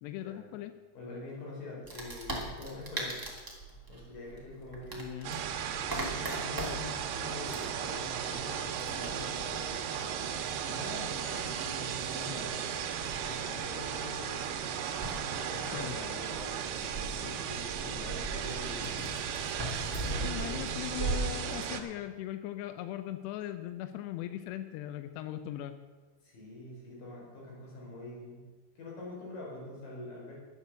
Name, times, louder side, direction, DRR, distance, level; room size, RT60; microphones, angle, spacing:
voice 1, 0.0-0.7 4.9-5.4 15.7-15.9 20.1-25.8, left 12 dB, 85° left, 10 dB, 2.4 m, -39 dB
voice 2, 0.9-3.2 3.9-9.8 10.6-12.6 13.1-14.5 15.3-18.9 20.0-20.9 26.2-28.5 28.8-30.3, left 2 dB, 45° left, -4 dB, 5.6 m, -45 dB
Wood, 1.8-21.1, right 2 dB, 25° right, 0.4 m, -41 dB
sound 1, 5.2-21.8, right 8 dB, 85° right, 3.7 m, -36 dB
12.0 x 9.5 x 6.9 m, 1.3 s
omnidirectional pair, 5.6 m